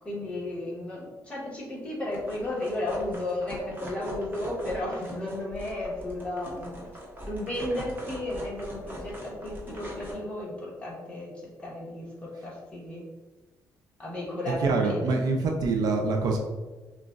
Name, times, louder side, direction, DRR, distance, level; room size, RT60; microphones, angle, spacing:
voice 1, 0.0-6.8 7.2-13.1 14.0-15.1, left 1 dB, 20° left, -5 dB, 1.4 m, -34 dB
sound 1, 2.1-10.1, equal, 30° right, 1.2 m, -41 dB
voice 2, 14.6-16.4, right 3 dB, 70° right, 2 dB, 0.5 m, -25 dB
5.7 x 2.3 x 2.5 m, 1.2 s
cardioid pair, 120°, 7 cm